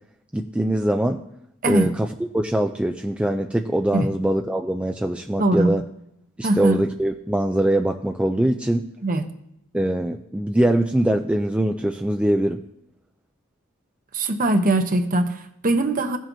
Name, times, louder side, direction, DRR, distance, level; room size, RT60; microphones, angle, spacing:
voice 1, 0.3-1.2 1.6-5.8 6.4-8.9 9.7-12.6, right 1 dB, 5° right, 4 dB, 0.3 m, -22 dB
voice 2, 5.4-5.7 6.4-6.8 9.0-9.2 14.1-16.2, right 2 dB, 40° right, 7 dB, 0.8 m, -21 dB
16.5 x 7.3 x 2.7 m, 0.78 s
head